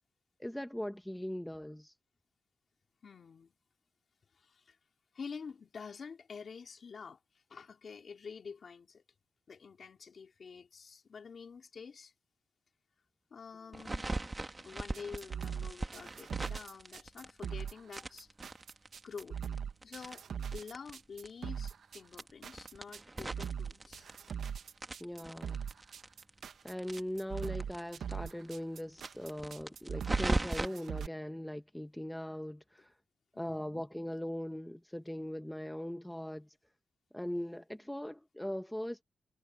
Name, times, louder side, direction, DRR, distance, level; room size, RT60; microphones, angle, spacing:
voice 1, 0.4-1.9 25.0-25.6 26.6-32.9 33.3-36.5 37.1-39.0, left 1 dB, 5° left, 1.0 m, -40 dB
voice 2, 3.0-3.5 4.3-4.8 5.1-9.0 9.5-12.1 13.3-14.1 14.6-18.3 19.0-19.4 19.8-20.2 20.5-24.1 33.3-33.8, left 5 dB, 50° left, 3.2 m, -48 dB
sound 1, 13.7-17.6 17.9-21.0 21.2-21.3 21.6-21.7 22.1-24.5 24.8-27.8 28.1-28.2 28.4-28.5 28.9-30.7, right 2 dB, 20° right, 1.7 m, -38 dB
sound 2, 14.9-31.1, right 7 dB, 75° right, 1.2 m, -41 dB
wide cardioid pair, 130°, 0 cm